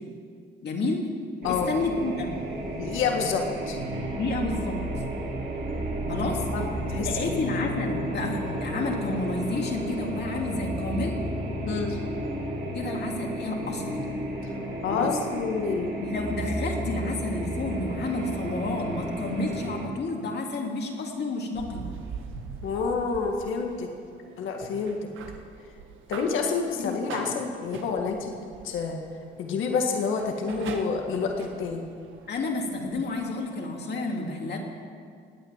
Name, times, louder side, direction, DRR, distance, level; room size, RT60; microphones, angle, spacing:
voice 1, 0.6-1.0 1.5-2.4 4.2-4.8 6.1-6.4 7.0-11.2 12.7-14.1 14.9-15.1 16.0-21.9 26.8-27.2 32.3-34.6, left 2 dB, 55° left, 0 dB, 2.9 m, -30 dB
sound 1, 1.4-19.9, right 1 dB, 50° right, 3.2 m, -32 dB
voice 2, 2.7-3.8 6.5-7.4 11.6-12.0 14.8-15.9 22.6-23.9 24.4-25.0 26.1-28.4 28.6-29.0 29.4-31.8, left 5 dB, 85° left, 2 dB, 1.8 m, -28 dB
sound 2, 21.5-33.3, right 5 dB, 80° right, 1.6 m, -43 dB
18.5 x 9.3 x 7.3 m, 2.2 s
cardioid pair, 90°, 20 cm